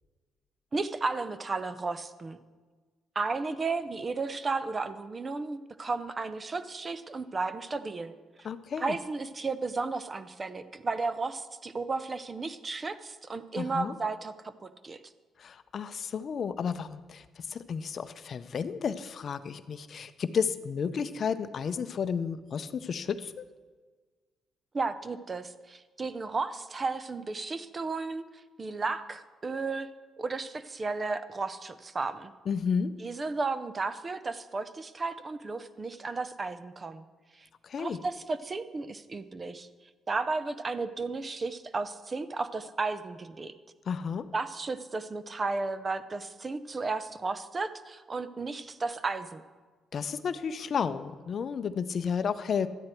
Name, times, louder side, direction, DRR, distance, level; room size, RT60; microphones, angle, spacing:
voice 1, 0.7-2.4 3.2-8.1 8.8-15.0 24.7-28.3 28.6-29.9 30.2-32.3 33.0-37.0 37.8-39.7 40.1-43.5 44.3-49.4, right 3 dB, 30° right, 13 dB, 0.7 m, -33 dB
voice 2, 8.4-9.0 13.6-13.9 15.4-23.5 32.5-32.9 37.6-38.0 43.9-44.3 49.9-52.7, left 6 dB, 50° left, 12 dB, 0.6 m, -32 dB
12.5 x 9.6 x 4.4 m, 1.4 s
cardioid pair, 90°, 0 cm